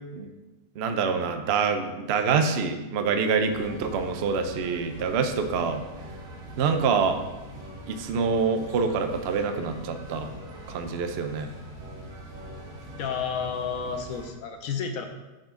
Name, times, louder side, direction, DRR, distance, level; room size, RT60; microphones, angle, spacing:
voice 1, 0.8-5.8 6.6-7.2 7.9-10.3 10.7-11.5, right 5 dB, 80° right, 7 dB, 0.5 m, -26 dB
sound 1, 3.5-14.3, right 1 dB, 50° right, 1.8 m, -42 dB
voice 2, 13.0-15.1, left 6 dB, 60° left, 5 dB, 1.0 m, -31 dB
8.6 x 5.6 x 3.7 m, 1.1 s
omnidirectional pair, 1.9 m